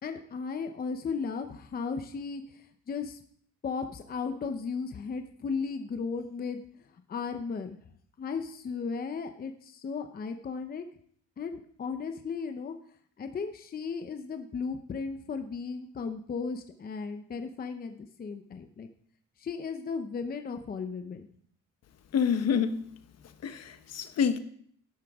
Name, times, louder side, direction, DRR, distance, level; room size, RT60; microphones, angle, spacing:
voice 1, 0.0-2.4 2.9-3.2 3.6-6.6 7.1-7.8 8.2-10.9 11.4-12.7 13.2-18.9 19.4-21.3, left 5 dB, 30° left, 0.7 m, -35 dB
voice 2, 22.1-22.9 23.4-24.4, left 7 dB, 55° left, 1.0 m, -27 dB
12.0 x 11.0 x 3.6 m
cardioid pair, 150°, 31 cm